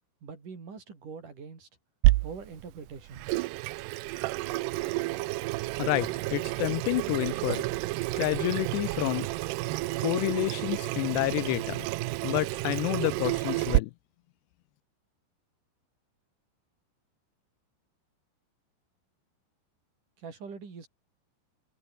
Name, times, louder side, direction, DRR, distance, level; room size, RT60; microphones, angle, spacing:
voice 1, 0.2-1.7 2.2-3.5 20.2-20.9, right 5 dB, 45° right, 6.3 m, -43 dB
Water tap faucet / Sink (filling or washing), 2.0-13.8, right 20 dB, 85° right, 2.4 m, -30 dB
voice 2, 5.8-7.6 8.2-9.3 10.0-11.9 12.2-13.9, left 23 dB, 85° left, 2.5 m, -29 dB
omnidirectional pair, 5.5 m